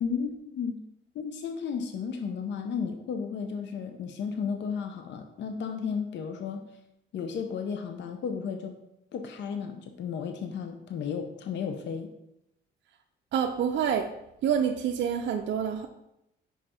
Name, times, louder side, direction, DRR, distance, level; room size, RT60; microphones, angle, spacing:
voice 1, 0.0-0.8 1.1-6.7 7.1-8.7 9.1-12.1, left 6 dB, 65° left, 6 dB, 0.7 m, -33 dB
voice 2, 13.3-14.1 14.4-15.9, right 8 dB, 65° right, 3 dB, 0.5 m, -27 dB
5.5 x 5.0 x 4.3 m, 0.83 s
cardioid pair, 90°, 20 cm